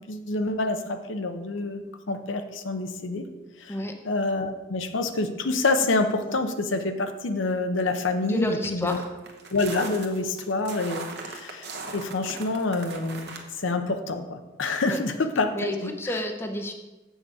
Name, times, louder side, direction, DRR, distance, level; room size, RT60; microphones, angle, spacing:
voice 1, 0.1-1.8 2.1-3.2 3.6-3.8 4.0-9.0 9.5-13.3 13.6-16.2, left 3 dB, 75° left, 8 dB, 0.7 m, -27 dB
voice 2, 8.2-9.1 14.9-15.0 15.5-16.7, left 1 dB, 10° left, 4 dB, 0.6 m, -30 dB
sound 1, 8.9-13.4, right 3 dB, 55° right, 1.0 m, -39 dB
7.9 x 6.4 x 4.8 m, 1.1 s
head